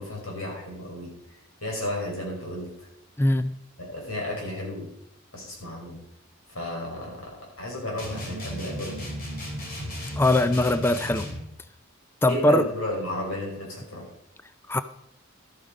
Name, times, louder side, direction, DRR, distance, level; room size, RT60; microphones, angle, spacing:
voice 1, 0.0-2.9 3.8-4.9 5.3-6.0 6.5-9.1 12.3-14.0, left 1 dB, 90° left, 5.6 m, -33 dB
voice 2, 3.2-3.6 10.2-11.3 12.2-12.6 14.7-14.8, left 1 dB, 10° left, 0.4 m, -21 dB
sound 1, 8.0-11.5, equal, 45° left, 2.9 m, -35 dB
12.5 x 8.6 x 5.2 m
head